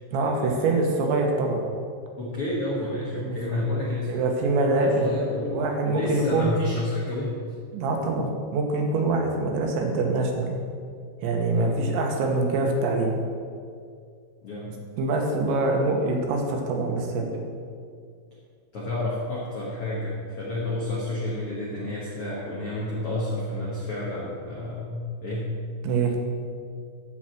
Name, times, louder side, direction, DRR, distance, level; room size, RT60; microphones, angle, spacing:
voice 1, 0.1-1.6 3.1-3.6 4.1-5.1 5.5-6.5 7.7-10.5 11.2-13.1 15.0-17.3 25.8-26.1, right 3 dB, 80° right, 2 dB, 3.5 m, -24 dB
voice 2, 2.2-4.2 4.7-7.4 11.5-11.8 14.4-14.8 18.7-25.5, left 1 dB, 75° left, -5 dB, 1.3 m, -30 dB
12.0 x 5.0 x 7.6 m, 2.3 s
omnidirectional pair, 5.1 m